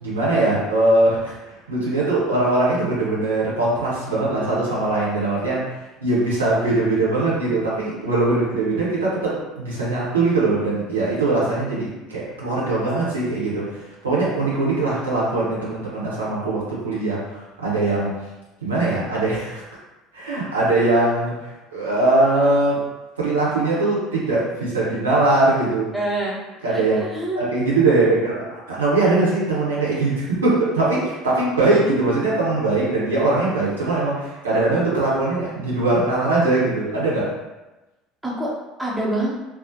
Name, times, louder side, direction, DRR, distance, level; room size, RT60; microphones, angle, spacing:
voice 1, 0.0-18.1 18.6-19.6 20.1-22.8 23.2-25.9 26.6-27.0 27.4-37.3, right 2 dB, 85° right, -7 dB, 0.6 m, -21 dB
voice 2, 25.9-26.4 26.7-27.4 38.2-38.5 38.8-39.3, right 1 dB, 10° right, -5 dB, 0.7 m, -26 dB
2.4 x 2.0 x 2.6 m, 1.1 s
figure-of-eight pair, 65°, 0 cm